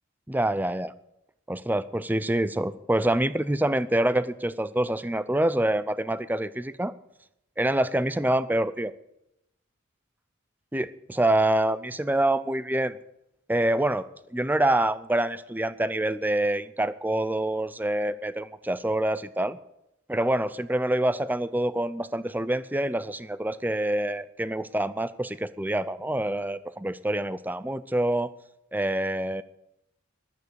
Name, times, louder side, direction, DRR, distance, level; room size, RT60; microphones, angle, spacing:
voice 1, 0.3-0.9 1.5-6.9 7.6-8.9 10.7-13.0 13.5-14.1 14.3-19.6 20.1-28.3 28.7-29.4, right 1 dB, 10° right, 15 dB, 0.5 m, -26 dB
14.5 x 12.0 x 6.9 m, 0.84 s
head